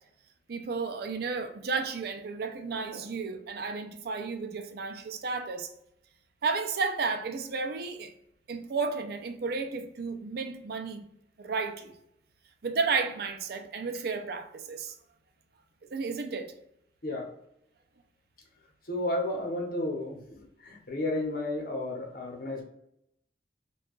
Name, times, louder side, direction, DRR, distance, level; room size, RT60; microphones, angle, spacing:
voice 1, 0.5-5.7 6.4-8.1 8.5-11.0 11.4-11.9 12.6-14.9 15.9-16.5, right 4 dB, 60° right, 0.4 m, -32 dB
voice 2, 18.9-20.2 20.6-22.6, left 1 dB, 55° left, 0.9 m, -32 dB
2.8 x 2.3 x 3.7 m
head